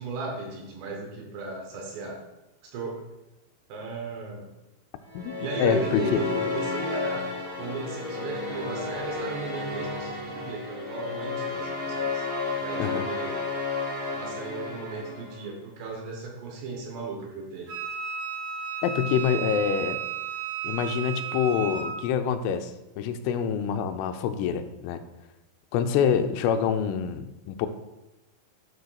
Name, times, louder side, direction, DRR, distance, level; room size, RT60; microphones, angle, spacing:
voice 1, 0.0-2.2 2.6-3.0 3.7-4.5 5.3-12.3 12.5-13.4 14.1-17.7, right 3 dB, 70° right, 0 dB, 2.9 m, -36 dB
sound 1, 5.1-15.5, left 3 dB, 45° right, 2.4 m, -32 dB
voice 2, 5.6-6.2 12.8-13.1 18.8-20.0 20.6-25.0 25.7-27.7, left 7 dB, 90° left, 8 dB, 3.2 m, -26 dB
Wind instrument woodwind instrument, 17.7-21.9, right 7 dB, 90° right, 5.8 m, -33 dB
11.5 x 6.4 x 2.3 m, 0.98 s
omnidirectional pair, 5.7 m